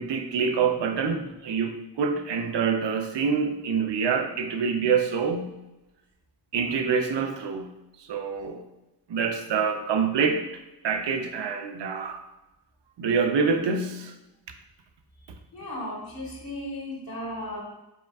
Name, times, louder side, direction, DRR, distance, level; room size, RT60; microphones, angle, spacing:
voice 1, 0.0-5.5 6.5-7.7 8.0-8.6 9.1-10.4 10.8-12.2 13.0-14.1, right 5 dB, 85° right, 5 dB, 0.6 m, -26 dB
voice 2, 15.5-17.6, left 1 dB, 60° left, -3 dB, 1.6 m, -35 dB
5.0 x 4.5 x 2.3 m, 0.97 s
wide cardioid pair, 135°, 41 cm